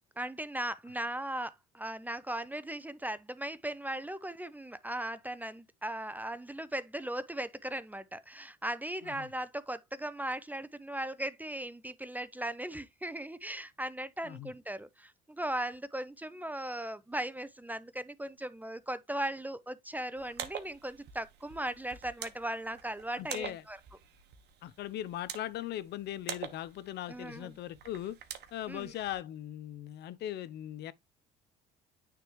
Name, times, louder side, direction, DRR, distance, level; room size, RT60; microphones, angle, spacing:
voice 1, 0.2-23.8 27.1-27.6 28.7-28.9, right 1 dB, 10° right, 0.5 m, -38 dB
sound 1, 20.2-29.1, right 9 dB, 60° right, 1.2 m, -46 dB
voice 2, 23.2-23.6 24.6-28.2 28.5-30.9, left 12 dB, 60° left, 0.6 m, -39 dB
9.1 x 3.5 x 2.9 m
supercardioid pair, 90°, 20 cm